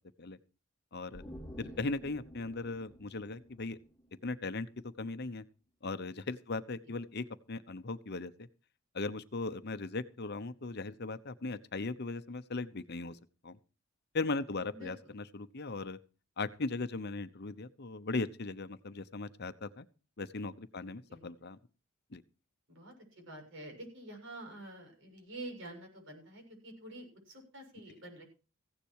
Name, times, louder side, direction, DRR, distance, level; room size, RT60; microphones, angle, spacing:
voice 1, 0.9-1.2 1.6-3.8 4.2-4.7 5.0-5.4 5.8-8.5 8.9-13.2 13.4-13.6 14.1-16.0 16.4-19.9 20.2-21.6 22.1-22.2, left 3 dB, 55° left, 12 dB, 0.9 m, -38 dB
sound 1, 1.1-4.5 4.8-4.9, equal, 5° left, 1.8 m, -51 dB
voice 2, 1.6-2.0 14.7-15.1 21.1-21.2 22.7-28.2, right 1 dB, 65° right, 3 dB, 7.0 m, -48 dB
16.0 x 10.5 x 4.7 m, 0.34 s
head